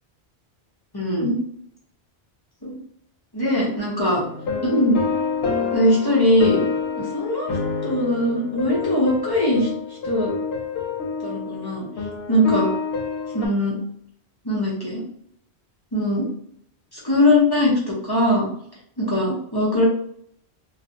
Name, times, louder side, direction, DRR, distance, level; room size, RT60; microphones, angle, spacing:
voice 1, 0.9-1.4 2.6-2.8 3.3-4.2 4.6-5.0 5.7-6.6 7.0-7.5 7.8-9.7 10.0-10.3 11.2-11.9 12.3-12.7 13.3-13.7 14.4-15.0 15.9-16.3 16.9-18.5 19.0-19.8, left 1 dB, 25° left, -6 dB, 0.6 m, -20 dB
sound 1, 4.2-13.5, left 4 dB, 70° left, 0.8 m, -28 dB
2.2 x 2.0 x 2.7 m, 0.68 s
omnidirectional pair, 1.1 m